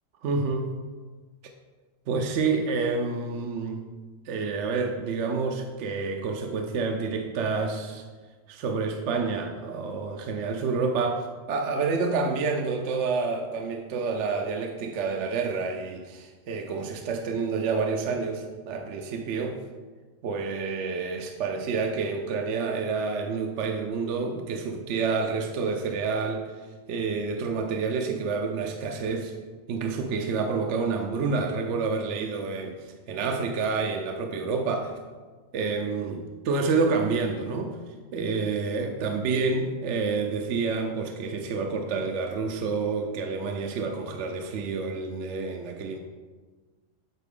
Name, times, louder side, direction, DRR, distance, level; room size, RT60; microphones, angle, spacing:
voice 1, 0.2-0.7 2.1-3.9 4.3-8.0 8.5-19.6 20.2-26.6 26.9-29.3 29.7-34.9 35.5-37.8 38.1-46.0, right 4 dB, 70° right, 3 dB, 0.8 m, -28 dB
8.3 x 4.0 x 3.7 m, 1.4 s
omnidirectional pair, 1.4 m